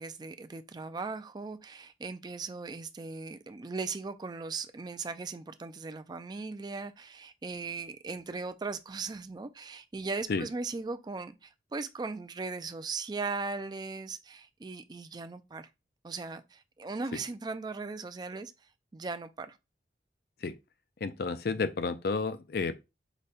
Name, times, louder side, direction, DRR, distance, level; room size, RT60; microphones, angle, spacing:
voice 1, 0.0-15.7 16.0-18.5 18.9-19.6, right 4 dB, 25° right, 0.4 m, -38 dB
voice 2, 21.0-22.7, left 4 dB, 60° left, 0.5 m, -31 dB
5.0 x 2.2 x 4.1 m
head